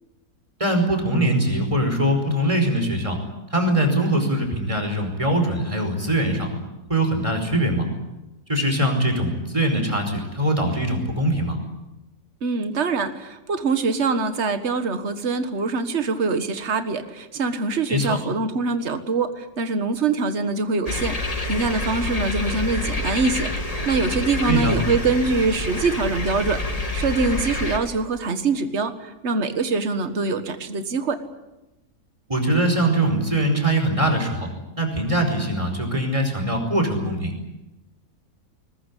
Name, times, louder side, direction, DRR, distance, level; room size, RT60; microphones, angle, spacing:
voice 1, 0.6-3.2 3.5-6.5 6.9-7.9 8.5-11.6 17.9-18.2 24.4-24.8 32.3-34.5 34.8-37.3, right 1 dB, 20° right, 4 dB, 5.1 m, -22 dB
voice 2, 12.4-31.2, right 4 dB, 45° right, 9 dB, 1.8 m, -24 dB
sound 1, 20.9-27.8, left 2 dB, 20° left, 2.2 m, -27 dB
21.0 x 21.0 x 10.0 m, 0.99 s
omnidirectional pair, 1.7 m